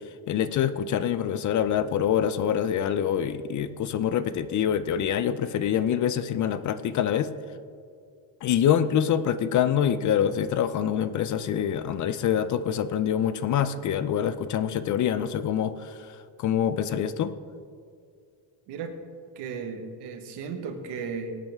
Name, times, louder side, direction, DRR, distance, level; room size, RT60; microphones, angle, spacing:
voice 1, 0.3-7.3 8.4-17.3, left 9 dB, 45° left, 13 dB, 0.6 m, -25 dB
voice 2, 19.3-21.3, right 5 dB, 70° right, 6 dB, 1.6 m, -35 dB
18.0 x 8.7 x 3.6 m, 2.3 s
cardioid pair, 125°, 42 cm